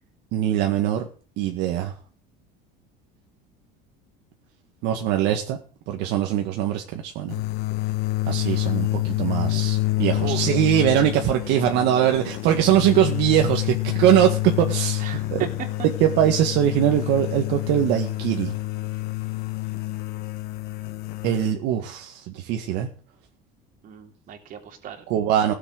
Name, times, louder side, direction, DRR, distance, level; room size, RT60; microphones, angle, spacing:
voice 1, 0.3-1.1 1.4-1.9 4.8-5.6 5.9-7.3 8.3-15.0 15.3-15.4 16.0-18.5 21.2-22.9 25.1-25.5, right 11 dB, 65° right, 4 dB, 2.0 m, -22 dB
sound 1, 7.3-21.5, left 18 dB, 55° left, 1.5 m, -27 dB
voice 2, 10.2-10.6 15.0-15.7 23.8-25.0, right 9 dB, 45° right, 5 dB, 3.2 m, -36 dB
16.5 x 7.9 x 7.9 m, 0.40 s
cardioid pair, 150°, 19 cm